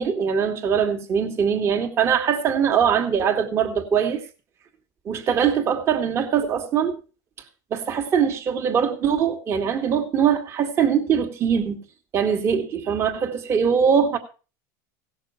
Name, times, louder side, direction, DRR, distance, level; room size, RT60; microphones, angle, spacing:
voice 1, 0.0-4.2 5.1-7.0 7.7-11.8 12.1-14.2, right 7 dB, 25° right, 1.8 m, -22 dB
16.5 x 6.6 x 5.5 m
supercardioid pair, 160°, 10 cm